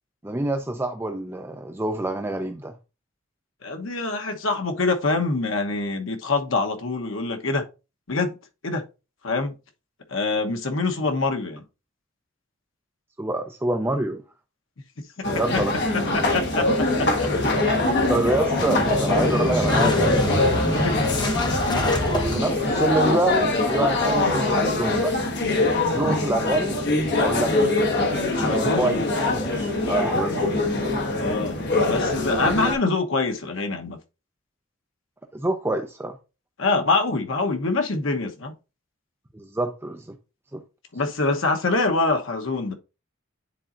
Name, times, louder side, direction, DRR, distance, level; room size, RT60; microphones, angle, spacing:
voice 1, 0.2-2.8 13.2-14.2 15.3-15.7 18.1-20.2 22.3-23.4 23.7-25.2 25.9-26.8 27.2-27.8 28.4-29.1 29.3-30.5 35.3-36.2 39.3-40.1 40.5-40.6, right 2 dB, 10° right, 0.5 m, -26 dB
voice 2, 3.6-7.6 8.1-8.4 8.6-8.8 9.2-9.5 10.1-11.6 16.1-16.6 17.0-17.7 20.7-21.1 28.3-28.9 31.2-31.6 31.9-34.0 36.6-38.5 40.9-42.7, left 3 dB, 80° left, 1.1 m, -25 dB
sound 1, 15.2-32.7, left 2 dB, 60° left, 1.5 m, -23 dB
Motorcycle / Engine starting, 16.2-23.4, left 1 dB, 20° left, 1.1 m, -28 dB
9.9 x 4.1 x 2.5 m
head